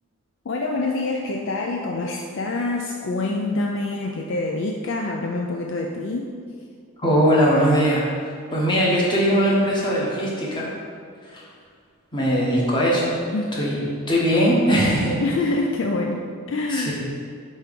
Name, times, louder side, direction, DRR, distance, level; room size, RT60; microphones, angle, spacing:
voice 1, 0.4-6.3 13.3-13.5 15.2-17.0, left 2 dB, 55° left, 1 dB, 0.4 m, -26 dB
voice 2, 7.0-10.7 11.3-11.4 12.1-13.1 13.5-13.8 14.1-15.2 16.7-17.0, equal, 20° left, -5 dB, 1.1 m, -20 dB
4.6 x 4.5 x 5.1 m, 2.1 s
head